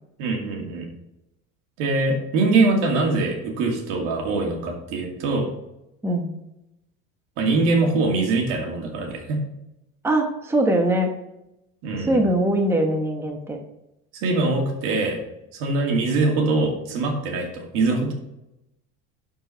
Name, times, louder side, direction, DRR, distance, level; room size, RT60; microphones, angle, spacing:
voice 1, 0.2-0.9 1.8-5.5 7.4-9.4 11.8-12.2 14.1-15.2 15.5-18.1, right 3 dB, 80° right, 1 dB, 2.4 m, -23 dB
voice 2, 10.0-11.1 12.0-13.6, right 1 dB, 10° right, 3 dB, 1.0 m, -21 dB
11.5 x 4.7 x 4.5 m, 0.87 s
cardioid pair, 135°, 31 cm